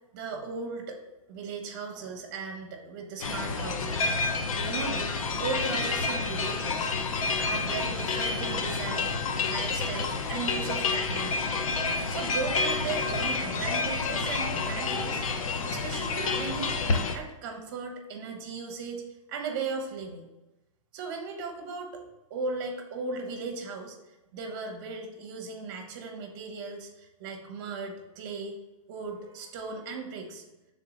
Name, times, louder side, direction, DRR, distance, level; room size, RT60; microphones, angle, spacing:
voice 1, 0.1-1.0 1.3-4.1 4.6-5.1 5.4-6.9 7.4-9.2 9.5-11.5 12.1-15.2 15.6-19.0 19.3-20.3 20.9-22.0 22.3-24.0 24.3-28.5 28.9-30.4, right 4 dB, 40° right, 3 dB, 1.1 m, -37 dB
sound 1, 3.2-17.2, left 4 dB, 80° left, 0.7 m, -29 dB
6.3 x 3.8 x 4.0 m, 1.0 s
hypercardioid pair, 160°, 17 cm